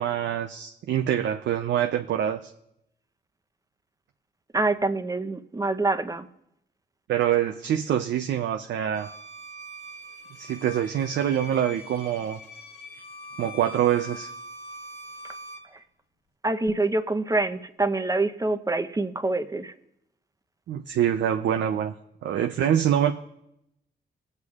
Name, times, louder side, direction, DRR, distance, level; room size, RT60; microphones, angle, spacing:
voice 1, 0.0-2.5 7.1-9.1 10.4-12.4 13.4-14.3 20.7-21.9 22.2-23.1, right 10 dB, 80° right, 5 dB, 0.5 m, -25 dB
voice 2, 4.5-6.3 16.4-19.7, right 2 dB, 20° right, 9 dB, 0.7 m, -26 dB
Bowed string instrument, 8.9-15.7, equal, 65° left, 1.7 m, -43 dB
19.0 x 8.1 x 2.4 m, 0.80 s
cardioid pair, 65°, 19 cm